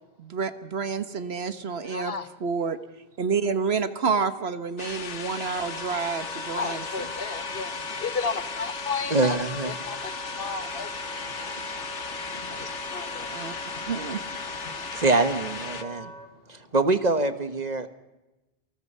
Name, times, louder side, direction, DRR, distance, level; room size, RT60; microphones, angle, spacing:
voice 1, 0.2-2.1 2.4-2.8 3.2-7.1 13.3-13.5 13.9-14.2, right 5 dB, 65° right, 11 dB, 1.4 m, -29 dB
voice 2, 1.8-2.3 6.6-9.4 9.7-11.2 12.3-13.3 13.7-13.8 14.6-14.7, left 5 dB, 55° left, 12 dB, 1.3 m, -34 dB
Wind instrument woodwind instrument, 4.7-16.3, right 1 dB, 5° left, 1.9 m, -40 dB
sound 1, 4.8-15.8, left 6 dB, 85° left, 1.5 m, -36 dB
voice 3, 9.1-9.7 14.9-16.1 16.5-17.9, right 2 dB, 40° right, 11 dB, 1.3 m, -24 dB
28.0 x 20.0 x 5.5 m, 1.0 s
omnidirectional pair, 1.2 m